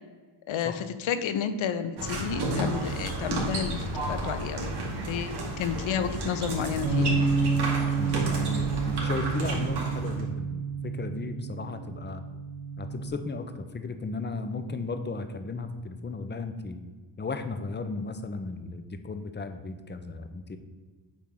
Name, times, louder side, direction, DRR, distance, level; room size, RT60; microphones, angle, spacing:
voice 1, 0.5-4.8 5.1-5.3 5.6-7.2, left 7 dB, 65° left, 11 dB, 0.8 m, -31 dB
sound 1, 2.0-10.3, right 2 dB, 50° right, 2.3 m, -32 dB
Bass guitar, 6.8-13.1, right 5 dB, 75° right, 1.9 m, -29 dB
voice 2, 8.0-12.2 12.8-16.8 17.2-20.6, left 3 dB, 20° left, 8 dB, 0.7 m, -35 dB
8.7 x 3.6 x 6.1 m, 1.4 s
cardioid pair, 100°, 49 cm